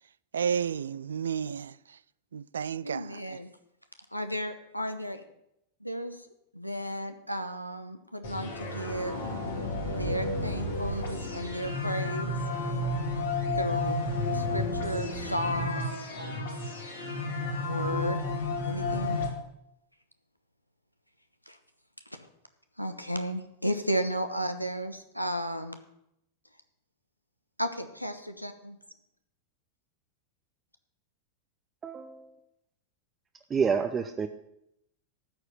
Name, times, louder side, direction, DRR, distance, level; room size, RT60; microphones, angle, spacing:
voice 1, 0.3-2.0 2.3-3.4, right 7 dB, 70° right, 0.3 m, -32 dB
voice 2, 2.8-3.5 4.1-5.2 5.8-6.1 6.5-9.2 9.9-12.3 13.6-14.0 14.3-16.6 17.5-18.2 18.6-19.2 21.5-21.6 22.8-25.8 27.6-28.8, equal, 90° left, 1.1 m, -34 dB
sound 1, 8.2-19.3, left 2 dB, 65° left, 2.9 m, -32 dB
voice 3, 31.8-32.4 33.5-34.3, right 6 dB, 20° right, 0.7 m, -28 dB
13.5 x 4.8 x 9.0 m
figure-of-eight pair, 90°, 0 cm